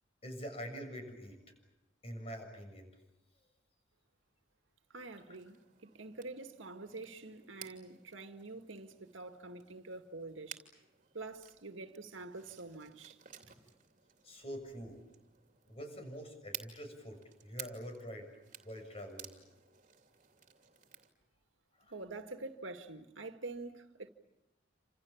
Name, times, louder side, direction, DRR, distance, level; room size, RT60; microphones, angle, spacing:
voice 1, 0.2-1.4 2.0-2.9 14.2-15.0 15.7-18.3 18.6-19.3 21.9-22.0, equal, 30° left, 7.0 m, -45 dB
voice 2, 4.9-10.6 11.1-13.2 21.9-24.1, right 3 dB, 80° right, 2.1 m, -46 dB
sound 1, 5.0-21.1, right 9 dB, 40° right, 2.9 m, -54 dB
29.0 x 27.0 x 7.2 m
head